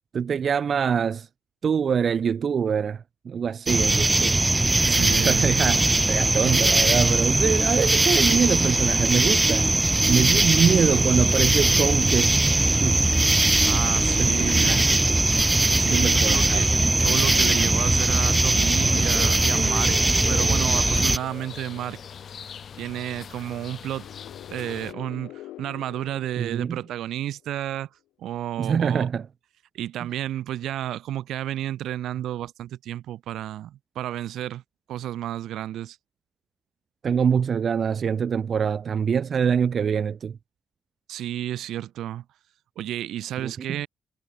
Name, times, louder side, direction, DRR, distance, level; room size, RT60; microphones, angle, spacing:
voice 1, 0.1-1.3 1.6-4.4 4.8-9.7 10.1-12.4 12.8-13.1 14.2-15.2 15.9-16.7 26.4-26.8 28.6-29.3 37.0-40.4 43.4-43.8, right 7 dB, 50° right, 1.7 m, -24 dB
sound 1, 3.7-21.2, right 2 dB, 15° right, 0.8 m, -20 dB
voice 2, 4.9-5.5 13.6-14.9 15.7-16.7 17.0-22.0 22.8-24.1 24.5-27.9 28.2-29.1 29.7-34.6 34.9-36.0 41.1-42.2 42.7-43.9, right 12 dB, 80° right, 6.8 m, -31 dB
sound 2, 18.8-24.9, left 7 dB, 55° left, 7.0 m, -39 dB
sound 3, 23.8-27.6, left 15 dB, 90° left, 5.6 m, -45 dB
cardioid pair, 90°, 0 cm